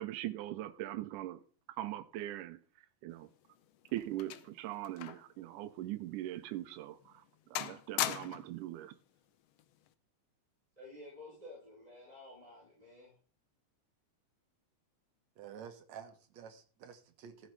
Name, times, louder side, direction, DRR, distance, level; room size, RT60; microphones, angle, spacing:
voice 1, 0.0-1.4 1.7-2.6 3.0-3.3 3.9-7.2 7.5-9.0, right 14 dB, 85° right, 2.2 m, -41 dB
sound 1, 3.2-5.4 5.7-5.8 6.5-6.6 7.0-7.3 7.6-8.6 9.6-9.9, left 12 dB, 80° left, 1.3 m, -39 dB
voice 2, 10.8-13.1, left 2 dB, 10° right, 4.8 m, -52 dB
voice 3, 15.4-17.5, right 8 dB, 65° right, 2.4 m, -50 dB
14.5 x 6.4 x 4.7 m
omnidirectional pair, 3.6 m